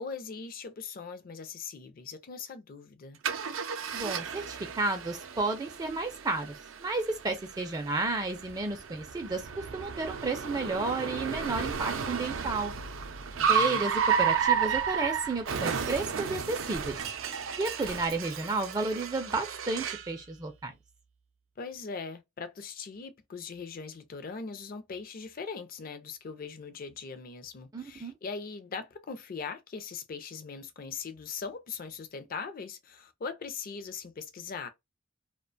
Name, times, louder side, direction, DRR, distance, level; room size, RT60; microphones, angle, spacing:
voice 1, 0.0-3.2 13.3-13.9 21.6-34.7, left 5 dB, 45° left, 0.4 m, -40 dB
Car, 3.2-20.1, right 7 dB, 85° right, 0.4 m, -32 dB
voice 2, 3.9-12.7 13.5-13.9 14.2-17.0 17.6-20.7 27.7-28.1, right 3 dB, 20° right, 0.4 m, -32 dB
2.4 x 2.2 x 2.5 m
head